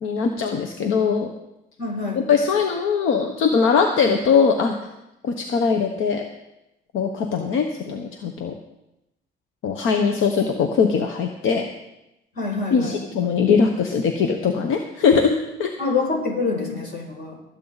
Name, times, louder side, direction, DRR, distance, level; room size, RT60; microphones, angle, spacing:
voice 1, 0.0-1.3 2.3-4.7 5.2-6.2 6.9-8.5 9.6-11.6 12.7-15.3 15.6-15.7, left 5 dB, 85° left, 4 dB, 1.0 m, -21 dB
voice 2, 1.8-2.2 12.4-13.0 15.8-17.4, left 4 dB, 55° left, -1 dB, 5.7 m, -26 dB
20.5 x 8.4 x 4.1 m, 0.91 s
cardioid pair, 90°, 20 cm